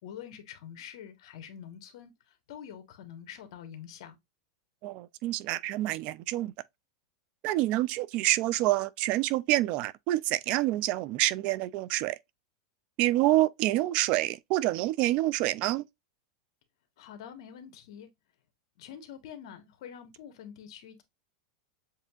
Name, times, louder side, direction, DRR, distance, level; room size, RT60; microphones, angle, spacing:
voice 1, 0.0-4.2 17.0-18.1 18.8-21.0, left 9 dB, 65° left, 1.2 m, -46 dB
voice 2, 4.8-6.5 7.4-12.2 13.0-15.8, right 16 dB, 40° right, 0.3 m, -27 dB
7.3 x 2.7 x 2.3 m
supercardioid pair, 150°, 3 cm